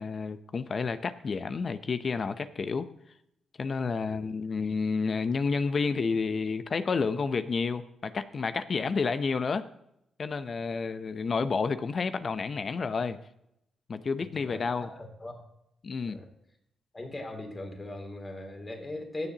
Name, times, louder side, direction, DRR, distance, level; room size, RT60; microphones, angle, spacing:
voice 1, 0.0-2.9 3.6-9.6 10.2-13.2 13.9-14.9 15.8-16.2, left 4 dB, 50° left, 0.6 m, -30 dB
voice 2, 4.0-4.3 14.2-15.4 16.0-16.3 16.9-19.3, left 1 dB, 30° left, 2.8 m, -40 dB
16.0 x 7.2 x 2.9 m
supercardioid pair, 65°, 0 cm